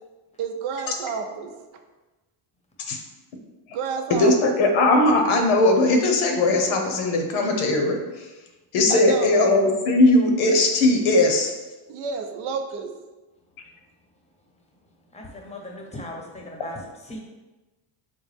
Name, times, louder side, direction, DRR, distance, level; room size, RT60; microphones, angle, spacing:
voice 1, 0.4-1.5 3.7-4.3 8.9-9.4 11.9-12.9, right 5 dB, 75° right, 5 dB, 0.6 m, -30 dB
voice 2, 4.1-8.3 8.7-11.5, left 2 dB, 80° left, 3 dB, 0.8 m, -19 dB
voice 3, 15.1-16.8 17.1-17.2, left 1 dB, 15° left, 0 dB, 0.7 m, -37 dB
3.9 x 2.1 x 3.3 m, 1.1 s
supercardioid pair, 80°, 49 cm